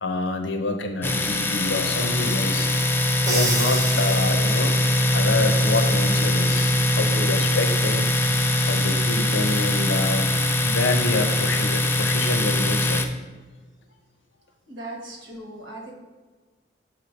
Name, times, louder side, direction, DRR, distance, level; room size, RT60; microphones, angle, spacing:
voice 1, 0.0-2.7 3.2-4.8 5.1-8.1 8.6-13.1, left 2 dB, 80° left, 5 dB, 0.7 m, -27 dB
Domestic sounds home sounds, 1.0-13.1, left 1 dB, 10° left, 0.3 m, -22 dB
Crash cymbal, 3.3-4.9, right 1 dB, 20° right, 0.9 m, -29 dB
voice 2, 14.7-15.9, right 2 dB, 85° right, 0 dB, 1.5 m, -38 dB
6.7 x 3.1 x 5.1 m, 1.4 s
head